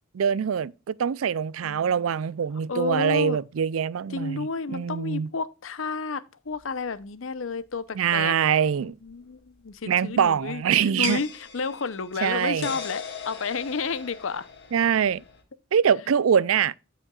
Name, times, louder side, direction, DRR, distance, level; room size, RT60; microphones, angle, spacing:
voice 1, 0.1-5.3 8.0-9.0 9.9-11.2 12.2-12.7 14.7-15.2 15.7-16.7, right 8 dB, 90° right, 0.4 m, -24 dB
voice 2, 1.6-2.2 2.7-3.4 4.1-8.3 8.8-14.5, left 4 dB, 75° left, 0.7 m, -31 dB
sound 1, 6.6-6.7 9.1-9.2 11.0-15.4, left 6 dB, 55° left, 1.8 m, -39 dB
15.5 x 5.2 x 2.3 m
head